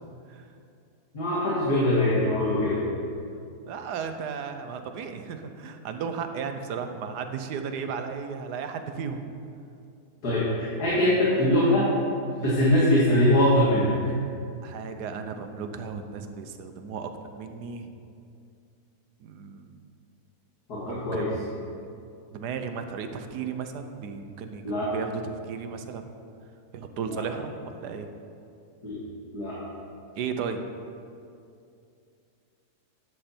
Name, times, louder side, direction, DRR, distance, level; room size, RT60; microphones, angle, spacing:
voice 1, 1.1-2.8 10.2-11.9 12.4-13.9 20.7-21.3 24.6-24.9 27.0-27.2 28.8-29.0 29.3-29.6, left 1 dB, 75° left, -7 dB, 2.6 m, -22 dB
voice 2, 3.7-9.4 14.6-17.9 19.2-19.7 20.8-21.8 22.3-26.0 26.7-28.1 30.2-30.6, right 6 dB, 90° right, 7 dB, 1.4 m, -35 dB
13.0 x 9.9 x 4.4 m, 2.5 s
omnidirectional pair, 1.7 m